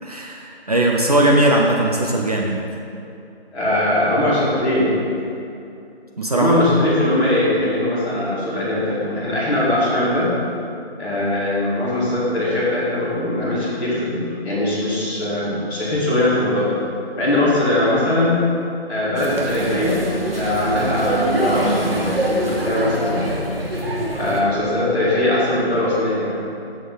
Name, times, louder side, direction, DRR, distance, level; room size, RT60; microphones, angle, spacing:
voice 1, 0.0-2.6 6.2-6.6, right 1 dB, 35° right, -1 dB, 0.8 m, -19 dB
voice 2, 3.5-5.0 6.3-10.3 11.0-16.8 17.2-18.4 18.9-23.3 24.2-26.4, left 1 dB, 5° left, -13 dB, 2.0 m, -21 dB
sound 1, 19.2-24.4, right 1 dB, 60° right, 1.7 m, -23 dB
13.5 x 7.6 x 4.1 m, 2.6 s
figure-of-eight pair, 155°, 32 cm